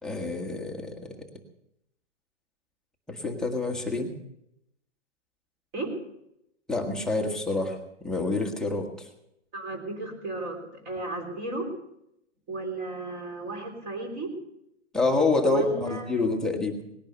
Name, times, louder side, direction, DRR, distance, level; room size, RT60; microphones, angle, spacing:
voice 1, 0.0-1.1 3.1-4.1 6.7-9.1 14.9-16.8, left 3 dB, ahead, 0 dB, 1.4 m, -27 dB
voice 2, 9.5-11.7 12.5-14.4 15.5-16.3, right 2 dB, 25° right, 3 dB, 3.6 m, -34 dB
19.0 x 10.5 x 6.6 m, 0.79 s
hypercardioid pair, 140°, 36 cm